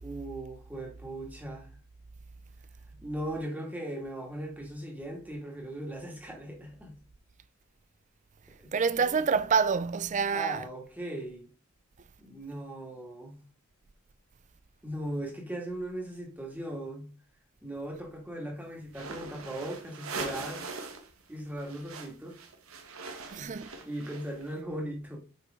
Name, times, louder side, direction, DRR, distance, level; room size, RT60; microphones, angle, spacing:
voice 1, 0.0-1.7 3.0-7.0 8.6-8.7 9.0-9.1 10.3-11.5 12.2-13.4 14.8-17.1 17.6-20.7 21.3-22.4 23.2-25.2, right 1 dB, 10° right, 2.2 m, -38 dB
voice 2, 8.7-10.6 23.3-23.7, right 5 dB, 35° right, 0.4 m, -27 dB
sound 1, 18.9-21.1 21.3-24.5, right 4 dB, 80° right, 1.4 m, -41 dB
7.7 x 5.6 x 3.7 m
head